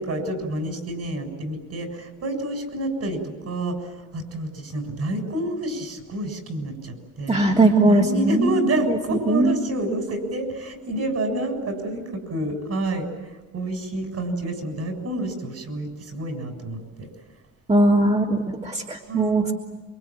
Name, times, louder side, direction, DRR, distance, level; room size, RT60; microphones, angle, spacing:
voice 1, 0.0-7.4 7.9-17.1 19.1-19.4, right 1 dB, 55° right, 6 dB, 7.6 m, -29 dB
voice 2, 7.3-8.6 8.9-9.0 9.3-9.6 17.7-19.5, right 2 dB, 25° right, -1 dB, 3.3 m, -19 dB
27.5 x 24.0 x 9.1 m, 1.2 s
cardioid pair, 90°, 30 cm